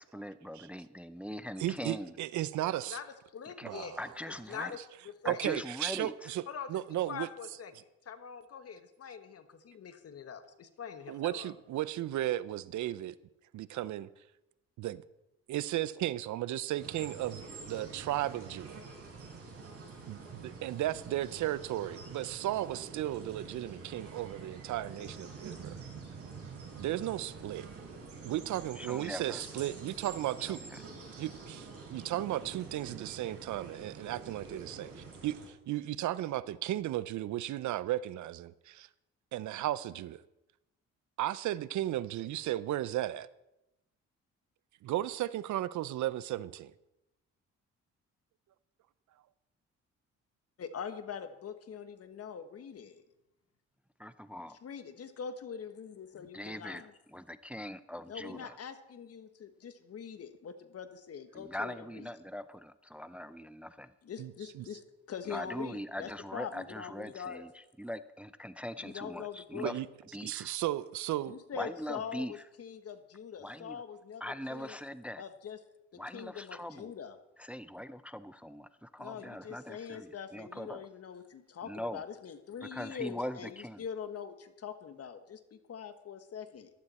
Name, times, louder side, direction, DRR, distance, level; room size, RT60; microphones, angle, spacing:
voice 1, 0.0-2.2 3.6-3.7 4.0-4.8 5.2-6.3 28.8-29.4 30.4-30.8 54.0-54.6 56.3-56.8 57.1-58.6 61.3-63.9 65.3-69.8 70.1-70.6 71.5-72.4 73.4-73.8 74.2-75.2 76.0-76.9 77.4-80.9 81.6-82.0 82.7-83.8, equal, 5° right, 14 dB, 0.5 m, -41 dB
voice 2, 1.6-3.0 3.6-4.0 5.3-6.4 6.7-7.3 11.1-13.1 13.5-14.1 14.8-15.0 15.5-18.8 20.1-25.7 26.8-27.7 28.2-30.6 31.2-38.9 39.3-40.2 41.2-43.3 44.8-46.7 64.2-64.7 69.6-69.9 70.2-71.4, right 14 dB, 75° right, 17 dB, 0.6 m, -35 dB
voice 3, 3.3-4.0 4.3-4.8 5.2-5.4 6.5-11.5 50.6-53.0 54.6-56.9 58.1-62.1 64.0-67.4 68.8-69.7 71.2-74.2 74.5-74.8 75.2-75.6 75.9-77.2 79.0-86.7, left 7 dB, 50° left, 10 dB, 1.4 m, -43 dB
sound 1, 16.8-35.5, right 4 dB, 50° right, 5.7 m, -47 dB
14.5 x 12.0 x 4.3 m, 0.91 s
cardioid pair, 90°, 30 cm